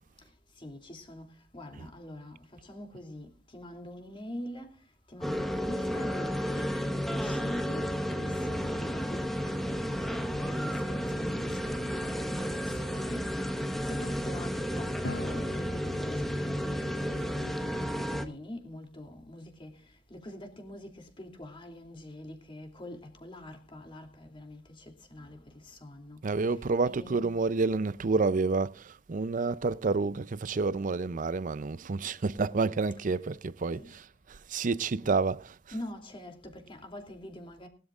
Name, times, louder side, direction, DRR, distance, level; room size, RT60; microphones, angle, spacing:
voice 1, 0.6-1.2 1.5-2.4 2.7-3.3 3.5-4.7 5.1-11.8 12.1-12.5 12.8-13.2 13.9-19.7 20.1-20.9 21.2-24.6 25.1-25.4 25.8-26.2 26.9-27.3 33.7-33.9 35.7-37.7, left 1 dB, 25° left, 2.8 m, -44 dB
sound 1, 5.2-18.2, equal, ahead, 1.2 m, -32 dB
Drum, 15.0-16.8, left 2 dB, 85° left, 1.7 m, -42 dB
voice 2, 26.2-34.0 34.5-35.8, right 3 dB, 45° right, 0.5 m, -29 dB
20.5 x 12.5 x 2.4 m
head